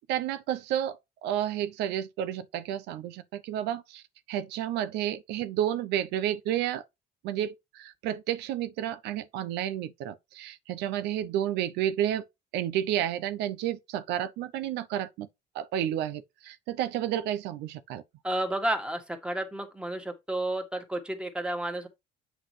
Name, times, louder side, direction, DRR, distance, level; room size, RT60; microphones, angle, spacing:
voice 1, 0.1-6.8 7.2-12.3 12.5-15.3 15.5-18.0, right 11 dB, 85° right, 0.6 m, -31 dB
voice 2, 18.2-21.9, right 1 dB, 5° right, 1.8 m, -31 dB
8.0 x 5.9 x 3.2 m
cardioid pair, 110°, 17 cm